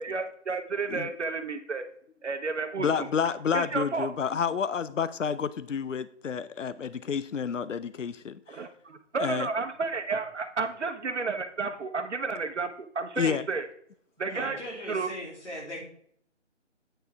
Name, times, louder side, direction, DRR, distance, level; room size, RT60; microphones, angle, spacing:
voice 1, 0.0-1.9 2.2-3.1 3.5-4.1 8.5-13.7 14.2-15.1, right 4 dB, 70° right, 7 dB, 1.0 m, -32 dB
voice 2, 2.8-8.6 9.2-9.5 13.2-13.4, left 7 dB, 85° left, 15 dB, 0.6 m, -29 dB
voice 3, 14.3-15.8, equal, 70° left, -2 dB, 3.3 m, -39 dB
9.0 x 6.7 x 3.5 m, 0.65 s
figure-of-eight pair, 160°, 36 cm